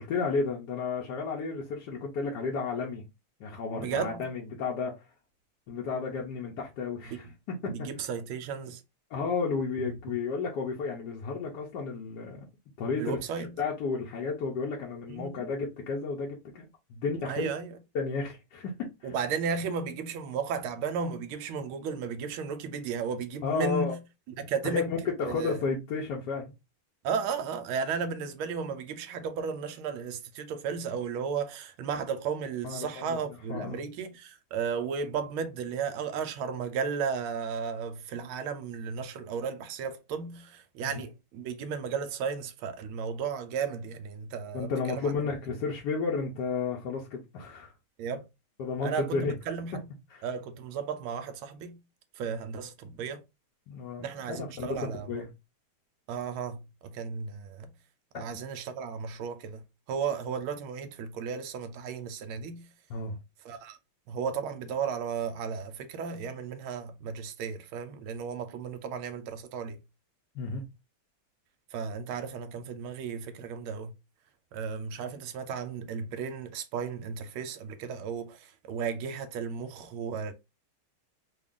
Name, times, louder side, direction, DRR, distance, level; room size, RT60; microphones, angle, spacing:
voice 1, 0.0-3.0 3.4-5.0 5.7-7.9 9.1-12.5 12.8-17.5 17.9-19.1 23.4-23.9 24.6-26.5 32.6-33.2 33.5-33.8 40.8-40.9 44.5-47.7 48.6-49.3 50.1-50.2 53.7-54.8 55.1-55.3 58.1-58.2 62.9-63.1 70.3-70.6, left 4 dB, 65° left, 1.1 m, -32 dB
voice 2, 3.7-4.3 7.7-8.8 13.0-13.5 15.1-15.5 17.3-17.8 19.0-24.0 24.4-25.0 25.2-25.6 27.0-45.1 48.0-48.2 48.8-49.8 50.2-51.8 52.2-53.2 54.0-55.1 56.1-57.7 58.1-62.7 63.4-63.8 64.1-69.8 71.7-73.9 74.5-80.3, right 6 dB, 80° right, 1.4 m, -34 dB
3.6 x 2.3 x 3.6 m
omnidirectional pair, 2.4 m